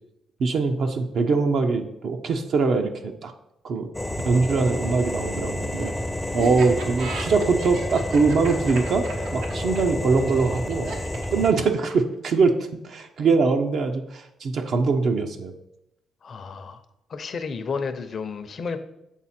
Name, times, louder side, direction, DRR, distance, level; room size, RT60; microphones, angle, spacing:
voice 1, 0.4-3.3 3.6-3.9 4.3-5.9 6.3-10.9 11.3-12.5 12.8-15.5, right 4 dB, 65° right, 5 dB, 0.7 m, -22 dB
sound 1, 3.9-11.5, left 1 dB, 10° left, 0.5 m, -30 dB
Laughter, 6.4-12.1, right 3 dB, 90° right, 1.1 m, -36 dB
voice 2, 16.2-16.8 17.1-18.8, left 5 dB, 50° left, 9 dB, 0.6 m, -31 dB
7.3 x 4.2 x 4.2 m, 0.84 s
cardioid pair, 90°, 0 cm